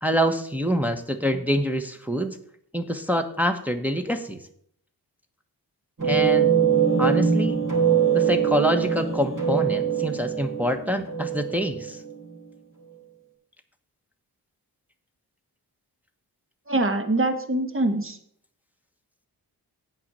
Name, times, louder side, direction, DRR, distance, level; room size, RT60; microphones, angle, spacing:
voice 1, 0.0-2.4 2.7-4.4 6.0-6.5 7.0-7.6 8.1-12.0, equal, 5° right, 4 dB, 1.1 m, -26 dB
sound 1, 6.0-12.1, right 7 dB, 50° right, 3.7 m, -23 dB
voice 2, 16.7-18.2, right 2 dB, 30° right, 7 dB, 1.5 m, -24 dB
8.3 x 5.4 x 7.5 m, 0.65 s
cardioid pair, 50°, 39 cm